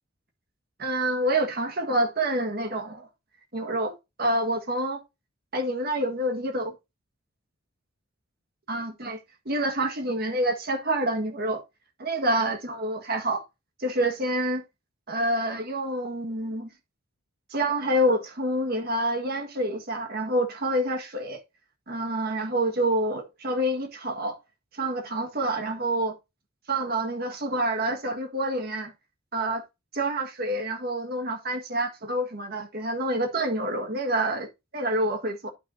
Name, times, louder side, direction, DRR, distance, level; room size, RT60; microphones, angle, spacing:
voice 1, 0.8-3.1 3.5-5.0 5.5-6.7 8.7-9.2 9.4-11.6 12.0-13.4 13.8-14.6 15.1-16.7 17.5-21.4 21.9-24.4 24.7-26.2 26.7-28.9 29.3-29.6 29.9-34.5 34.7-35.5, right 1 dB, 50° right, 1.7 m, -27 dB
11.0 x 5.9 x 2.7 m
head